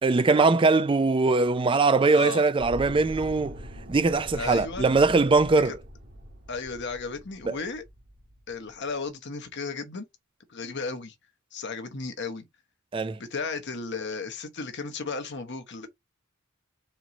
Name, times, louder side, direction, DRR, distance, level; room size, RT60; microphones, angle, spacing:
voice 1, 0.0-3.5 3.9-5.7 7.5-7.6 12.9-13.2, right 3 dB, 25° right, 0.4 m, -21 dB
voice 2, 2.1-2.5 4.3-4.9 5.6-5.8 6.5-7.8 8.5-10.1 10.5-11.1 11.5-12.4 13.2-15.9, left 4 dB, 55° left, 1.0 m, -34 dB
sound 1, 2.6-8.9, equal, 55° right, 1.5 m, -43 dB
4.3 x 3.0 x 3.9 m
head